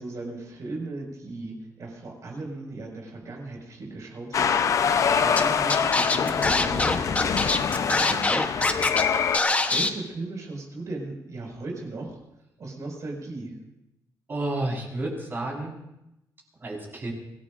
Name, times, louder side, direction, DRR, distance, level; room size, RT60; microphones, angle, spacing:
voice 1, 0.0-8.6 9.7-12.2 12.6-13.5, right 2 dB, 50° right, 0 dB, 5.8 m, -37 dB
sound 1, 4.3-9.4, left 7 dB, 50° left, 0.7 m, -24 dB
Scratching (performance technique), 5.4-5.5 5.7-9.0 9.3-9.9, left 3 dB, 20° left, 1.1 m, -23 dB
voice 2, 14.3-15.7 16.6-17.1, right 2 dB, 30° right, -2 dB, 4.9 m, -30 dB
25.0 x 18.0 x 2.6 m, 0.88 s
cardioid pair, 135°, 7 cm